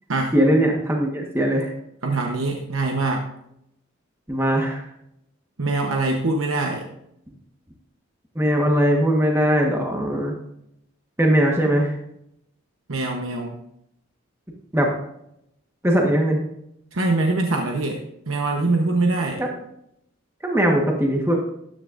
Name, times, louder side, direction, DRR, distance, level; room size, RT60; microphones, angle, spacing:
voice 1, 0.3-1.7 4.3-4.8 8.3-10.3 11.2-11.9 14.7-14.9 15.8-16.4 19.4-19.5 20.4-21.4, equal, 10° right, 0 dB, 1.3 m, -20 dB
voice 2, 2.0-3.2 5.6-6.9 12.9-13.5 16.9-18.0 18.3-19.4, right 2 dB, 80° right, 2 dB, 1.0 m, -23 dB
13.0 x 10.0 x 2.6 m, 0.77 s
head